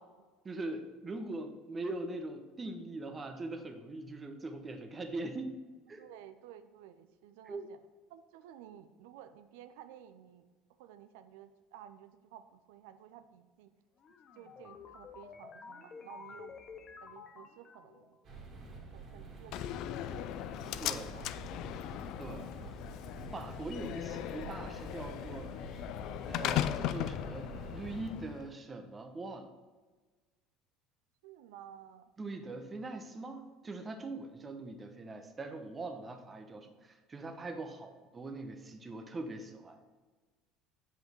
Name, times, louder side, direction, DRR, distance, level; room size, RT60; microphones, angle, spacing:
voice 1, 0.4-5.6 5.9-6.0 7.5-7.7 20.8-21.2 22.2-22.5 23.3-25.5 26.3-29.5 32.2-39.8, right 2 dB, 25° right, 6 dB, 1.0 m, -42 dB
voice 2, 6.0-7.8 8.1-10.5 10.8-13.7 14.3-16.6 17.0-18.2 18.9-20.2 20.5-21.3 31.2-32.1, right 10 dB, 70° right, 10 dB, 0.6 m, -54 dB
sound 1, 14.0-18.2, left 5 dB, 40° left, 0.8 m, -51 dB
sound 2, 18.2-28.0, right 3 dB, 45° right, 2.3 m, -48 dB
Slam, 19.5-28.5, left 12 dB, 60° left, 0.3 m, -38 dB
7.8 x 5.1 x 4.6 m, 1.3 s
hypercardioid pair, 70°, 0 cm